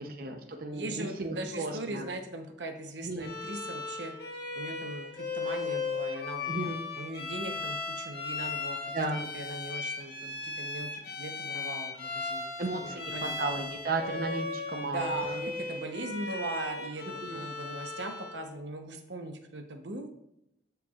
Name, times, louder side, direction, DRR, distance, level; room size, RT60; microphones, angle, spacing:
voice 1, 0.0-2.1 3.0-3.3 6.5-6.8 8.9-9.2 12.6-15.4 17.2-17.4, right 2 dB, 55° right, 3 dB, 0.8 m, -34 dB
voice 2, 0.7-4.1 4.5-6.5 7.0-12.5 12.8-13.4 14.8-20.1, right 2 dB, 85° right, 5 dB, 0.9 m, -39 dB
Bowed string instrument, 3.2-18.4, left 4 dB, 60° left, 1.2 m, -37 dB
13.0 x 4.6 x 2.4 m, 0.80 s
head